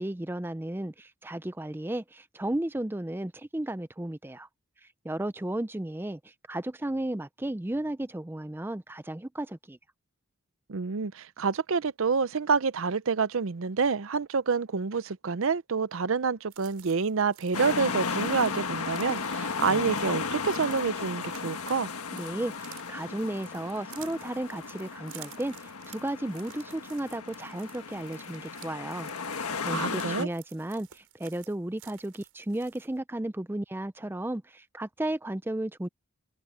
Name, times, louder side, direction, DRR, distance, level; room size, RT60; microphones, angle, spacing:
voice 1, 0.0-4.5 5.0-9.8 22.1-29.1 29.4-35.9, right 1 dB, 10° right, 0.4 m, -34 dB
voice 2, 10.7-21.9 29.7-30.3, right 5 dB, 65° right, 0.6 m, -28 dB
sound 1, 16.5-33.0, right 12 dB, 85° right, 6.5 m, -53 dB
sound 2, 17.5-30.2, left 4 dB, 90° left, 1.5 m, -35 dB
head